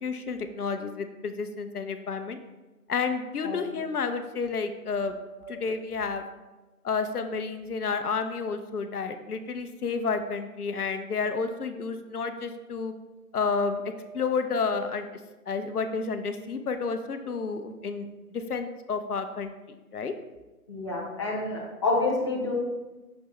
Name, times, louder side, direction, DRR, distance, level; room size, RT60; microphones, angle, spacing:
voice 1, 0.0-2.4 2.9-5.2 5.5-6.2 6.8-12.9 13.3-13.8 14.1-15.1 15.5-20.1, left 5 dB, 75° left, 8 dB, 0.7 m, -30 dB
voice 2, 20.7-22.5, left 3 dB, 20° left, -4 dB, 0.6 m, -29 dB
6.2 x 6.1 x 3.0 m, 1.1 s
figure-of-eight pair, 150°, 46 cm